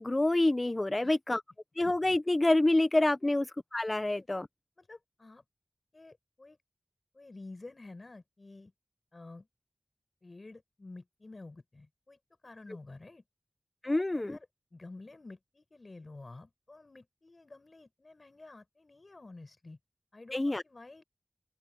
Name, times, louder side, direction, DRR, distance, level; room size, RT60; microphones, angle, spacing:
voice 1, 0.0-1.4 1.8-3.5 3.7-4.5 13.8-14.4 20.3-20.6, left 2 dB, 35° left, 1.0 m, -27 dB
voice 2, 4.8-5.4 5.9-6.6 7.1-8.7 9.1-9.5 10.2-13.2 13.8-14.5 14.7-19.8 20.1-21.0, left 2 dB, 55° left, 7.4 m, -50 dB
open air
cardioid pair, 40°, 0 cm